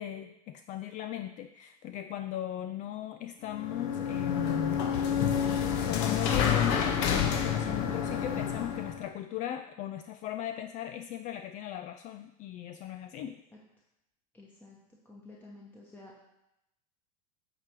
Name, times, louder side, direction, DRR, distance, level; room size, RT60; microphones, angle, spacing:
voice 1, 0.0-4.8 5.9-13.4, left 12 dB, 40° left, 9 dB, 0.4 m, -37 dB
sound 1, 3.5-9.0, left 8 dB, 60° left, 1.1 m, -29 dB
voice 2, 14.3-14.8 15.0-16.1, left 2 dB, 10° left, -3 dB, 1.1 m, -51 dB
8.9 x 3.3 x 6.0 m, 0.90 s
hypercardioid pair, 100°, 20 cm